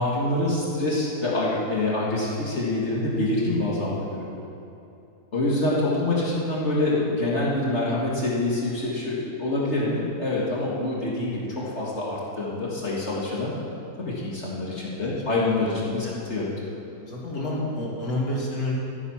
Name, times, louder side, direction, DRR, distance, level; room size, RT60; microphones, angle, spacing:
voice 1, 0.0-4.4 5.3-13.5 14.0-16.5, left 2 dB, 45° left, -5 dB, 2.1 m, -26 dB
voice 2, 15.8-16.2 16.9-18.7, left 1 dB, 65° left, -4 dB, 3.0 m, -29 dB
13.5 x 9.6 x 5.8 m, 2.8 s
omnidirectional pair, 1.7 m